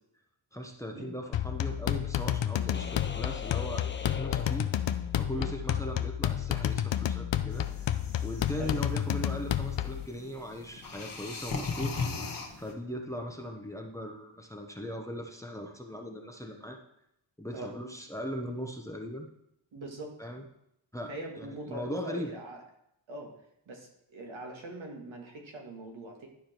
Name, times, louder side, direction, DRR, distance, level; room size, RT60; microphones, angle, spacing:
voice 1, 0.5-4.7 5.2-7.9 8.2-11.9 12.2-16.8 17.4-19.3 20.2-20.4 20.9-22.3, equal, 5° left, 2 dB, 0.9 m, -39 dB
sound 1, 1.3-10.1, left 11 dB, 65° left, 0.6 m, -30 dB
sound 2, 2.7-5.4, left 6 dB, 25° left, 0.4 m, -42 dB
sound 3, 7.5-12.7, left 4 dB, 45° left, 1.4 m, -39 dB
voice 2, 19.7-20.2 21.1-22.6 23.1-23.3 23.7-26.3, right 1 dB, 65° right, 0 dB, 2.1 m, -42 dB
11.5 x 5.0 x 4.5 m, 0.78 s
wide cardioid pair, 95°, 49 cm